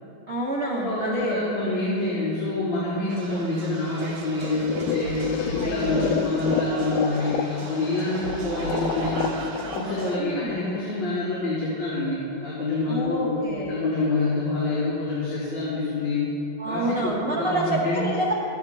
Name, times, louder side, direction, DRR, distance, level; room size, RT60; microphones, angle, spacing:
voice 1, 0.3-1.4 5.6-6.3 10.2-10.6 12.9-13.8 16.6-18.3, right 1 dB, 25° right, -5 dB, 1.4 m, -28 dB
voice 2, 0.8-5.3 5.6-13.4 13.7-16.2 16.6-18.1, left 2 dB, 50° left, -12 dB, 5.3 m, -27 dB
sound 1, 3.1-10.2, right 2 dB, 60° right, 2.1 m, -37 dB
sound 2, 4.4-11.3, left 8 dB, 80° left, 2.2 m, -31 dB
25.0 x 16.0 x 2.2 m, 2.7 s
omnidirectional pair, 4.2 m